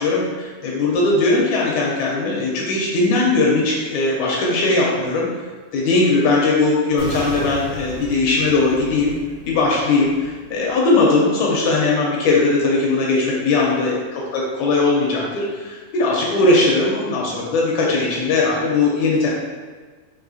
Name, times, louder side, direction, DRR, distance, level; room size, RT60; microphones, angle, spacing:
voice 1, 0.0-5.3 5.7-9.1 9.5-19.3, left 3 dB, 80° left, -3 dB, 1.9 m, -19 dB
sound 1, 7.0-11.0, right 2 dB, 85° right, 2.5 m, -35 dB
5.5 x 2.5 x 2.6 m, 1.4 s
omnidirectional pair, 3.7 m